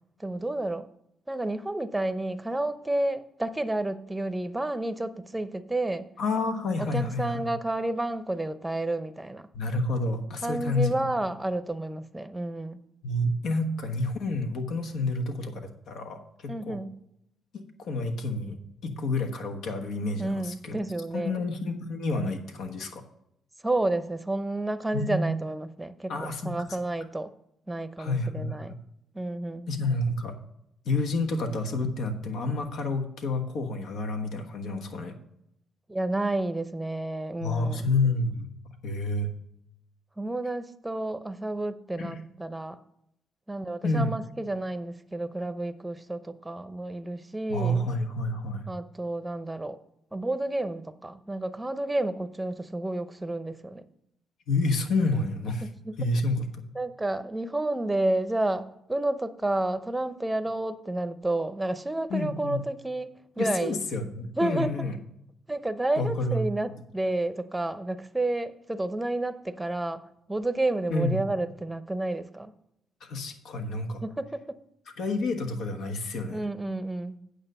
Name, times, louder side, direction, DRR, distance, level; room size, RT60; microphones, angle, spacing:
voice 1, 0.2-0.9 1.3-6.1 6.8-9.5 10.4-12.8 16.5-17.0 20.2-21.4 23.6-27.3 27.7-28.7 29.1-29.7 35.9-37.9 40.2-42.8 43.5-47.9 48.7-49.8 50.1-53.8 55.6-55.9 56.7-63.1 63.4-63.8 64.4-64.7 65.5-70.0 70.3-72.5 74.0-74.6 76.3-77.1, right 2 dB, 10° right, 12 dB, 0.7 m, -30 dB
voice 2, 6.2-7.5 9.5-10.9 13.0-16.8 17.5-18.6 18.8-20.8 21.1-23.0 24.9-25.3 26.1-26.5 28.0-28.7 29.7-30.3 30.8-35.2 37.4-38.5 38.8-39.3 42.0-42.2 43.8-44.1 47.5-48.6 54.5-55.7 56.0-56.6 62.1-62.6 63.4-65.0 66.0-66.4 70.9-71.2 73.0-74.0 75.0-76.4, left 2 dB, 75° left, 4 dB, 1.2 m, -29 dB
8.9 x 6.6 x 5.5 m, 0.77 s
cardioid pair, 90°, 0 cm